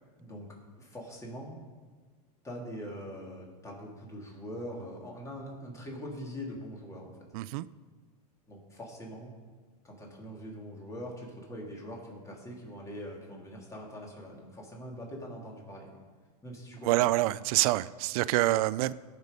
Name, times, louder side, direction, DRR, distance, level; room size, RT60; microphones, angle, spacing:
voice 1, 0.2-0.5 0.8-1.6 2.4-7.2 8.5-9.3 9.8-15.9 16.4-17.1, equal, 15° left, 2.9 m, -43 dB
voice 2, 7.3-7.7 16.8-18.9, right 17 dB, 60° right, 0.5 m, -26 dB
17.5 x 6.4 x 5.3 m
supercardioid pair, 125°, 21 cm